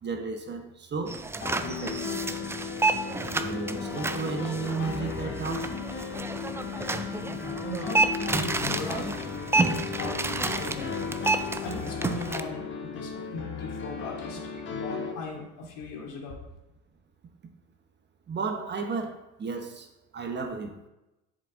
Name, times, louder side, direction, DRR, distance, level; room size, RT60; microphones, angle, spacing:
voice 1, 0.0-1.2 1.7-2.3 3.4-5.7 18.3-20.8, right 4 dB, 30° right, 1.0 m, -33 dB
sound 1, 1.1-12.4, right 3 dB, 10° right, 0.3 m, -30 dB
sound 2, 1.4-15.1, left 6 dB, 35° left, 1.3 m, -35 dB
voice 2, 7.6-9.3 9.6-11.3 11.6-14.4 14.7-16.4, left 2 dB, 70° left, 2.5 m, -38 dB
7.7 x 7.0 x 3.7 m
supercardioid pair, 105°, 33 cm